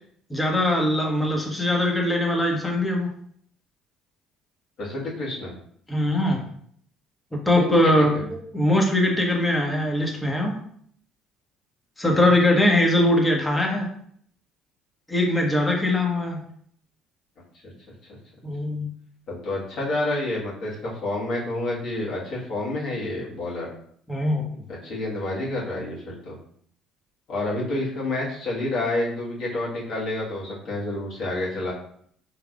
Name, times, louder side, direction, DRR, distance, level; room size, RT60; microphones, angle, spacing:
voice 1, 0.3-3.1 5.9-6.4 7.4-10.6 12.0-13.9 15.1-16.4 18.4-18.9 24.1-24.5, left 1 dB, 15° left, 0 dB, 1.3 m, -21 dB
voice 2, 4.8-5.5 7.4-7.9 12.1-12.3 17.6-17.7 18.1-18.2 19.3-23.7 24.8-26.4 27.3-31.7, left 2 dB, 60° left, -6 dB, 1.7 m, -29 dB
4.6 x 3.2 x 2.5 m, 0.63 s
hypercardioid pair, 60°, 0 cm